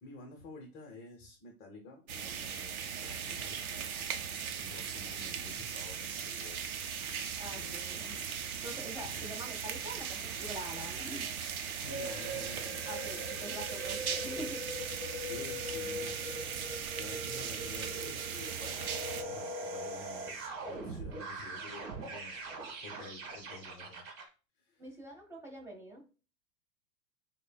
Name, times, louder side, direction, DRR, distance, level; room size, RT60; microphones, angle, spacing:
voice 1, 0.0-6.8 7.5-7.8 9.0-9.4 11.8-12.9 13.4-13.5 15.2-16.2 16.9-20.4 20.7-22.5 22.8-24.0 24.6-24.8, left 3 dB, 25° left, 1 dB, 0.8 m, -50 dB
sound 1, 2.1-19.2, right 7 dB, 75° right, 0.6 m, -39 dB
sound 2, 5.4-20.5, right 6 dB, 25° right, 0.5 m, -51 dB
voice 2, 7.4-8.3 8.6-11.3 12.8-14.6 24.8-26.0, equal, 5° right, -1 dB, 1.4 m, -45 dB
sound 3, 11.9-24.3, right 1 dB, 40° right, 1.5 m, -42 dB
6.4 x 2.2 x 2.3 m, 0.33 s
figure-of-eight pair, 95°, 43 cm